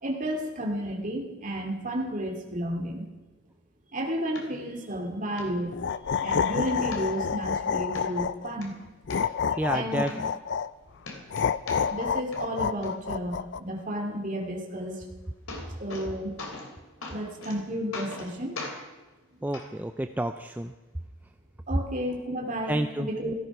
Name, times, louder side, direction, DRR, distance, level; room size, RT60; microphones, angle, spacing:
voice 1, 0.0-3.1 3.9-5.7 6.2-8.7 9.5-10.0 11.9-15.1 15.8-16.4 17.1-18.6 21.7-23.3, equal, 35° right, 2 dB, 2.5 m, -32 dB
sound 1, 4.4-4.5 4.9-5.0 5.4-5.5 5.9-6.4 6.9-7.5 8.0-8.1 8.4-9.2 9.7-9.8 10.1-10.8 11.0-12.1 12.3-12.9 14.9-15.0 15.3-16.1 16.4-16.7 17.0-17.6 17.9-18.3 18.6-18.8 19.5-19.7 20.6-20.7, left 3 dB, 80° left, 3.3 m, -39 dB
sound 2, 5.7-8.5 9.1-10.7 11.3-13.6, left 6 dB, 55° left, 0.4 m, -28 dB
voice 2, 9.6-10.1 19.4-20.7 22.7-23.1, right 1 dB, 10° right, 7 dB, 0.4 m, -29 dB
17.0 x 14.0 x 6.0 m, 1.2 s
head